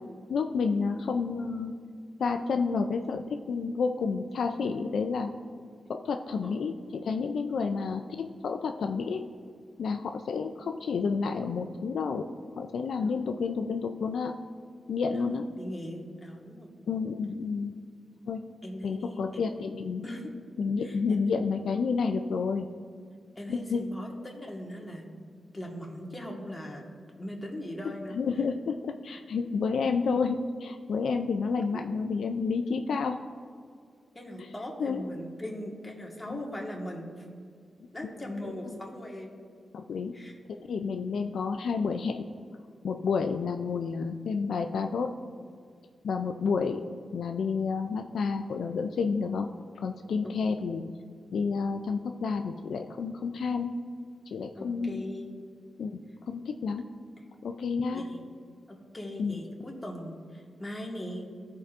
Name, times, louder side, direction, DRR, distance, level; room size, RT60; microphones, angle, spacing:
voice 1, 0.3-1.8 2.2-5.3 5.9-9.2 9.8-12.3 12.6-14.4 14.9-15.5 16.9-17.7 18.3-18.4 18.8-20.1 20.6-22.7 23.5-23.8 28.1-33.2 34.4-34.5 34.8-35.0 36.3-36.4 38.0-38.8 39.7-40.2 40.5-42.3 42.8-45.1 46.0-46.8 47.1-49.5 49.8-50.8 51.3-53.8 54.3-55.0 55.8-56.0 56.3-56.9 57.4-58.1 59.2-59.4, left 5 dB, 80° left, 5 dB, 0.3 m, -30 dB
voice 2, 15.1-16.7 18.6-19.2 20.0-20.3 20.8-21.2 23.3-25.1 25.5-26.9 27.2-28.2 29.1-29.2 34.1-37.3 37.9-39.4 40.1-40.3 54.5-55.3 57.2-57.3 57.8-58.2 58.7-61.3, equal, 15° left, -1 dB, 1.5 m, -40 dB
13.5 x 4.8 x 2.5 m, 2.1 s
cardioid pair, 75°, 0 cm